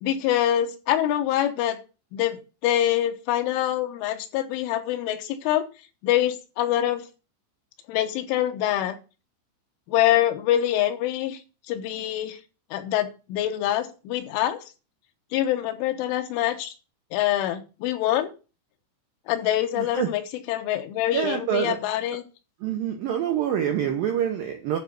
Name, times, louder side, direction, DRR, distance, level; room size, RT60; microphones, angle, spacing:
voice 1, 0.0-1.8 2.1-5.7 6.0-7.1 7.9-9.0 9.9-11.4 11.7-12.4 12.7-14.6 15.3-16.7 17.1-18.3 19.3-22.2, left 12 dB, 80° left, 9 dB, 3.5 m, -25 dB
voice 2, 19.8-20.1 21.1-21.8 22.6-24.8, right 9 dB, 75° right, 4 dB, 2.1 m, -26 dB
11.5 x 4.8 x 6.6 m, 0.32 s
omnidirectional pair, 5.7 m